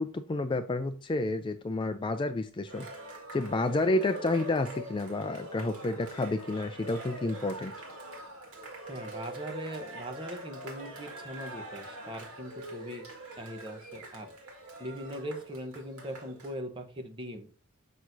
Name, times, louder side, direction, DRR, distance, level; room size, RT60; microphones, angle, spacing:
voice 1, 0.0-2.9 3.3-7.7, left 2 dB, 20° left, 0.3 m, -30 dB
Cheering, 2.7-16.5, right 1 dB, 85° right, 2.0 m, -44 dB
voice 2, 8.9-13.1 13.4-14.3 14.8-17.5, equal, 25° right, 1.0 m, -40 dB
6.1 x 6.0 x 2.6 m
head